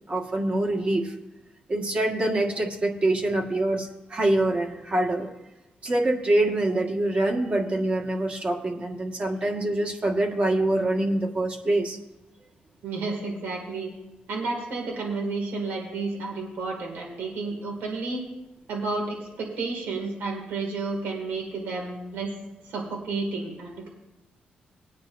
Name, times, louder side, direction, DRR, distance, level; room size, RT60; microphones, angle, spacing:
voice 1, 0.1-1.1 1.7-5.3 5.8-12.0, right 1 dB, 40° right, 1 dB, 1.6 m, -25 dB
voice 2, 12.8-13.9 14.3-18.2 18.7-22.3 22.6-23.9, right 3 dB, 85° right, 0 dB, 2.1 m, -31 dB
19.5 x 9.4 x 2.6 m, 0.99 s
cardioid pair, 110°, 3 cm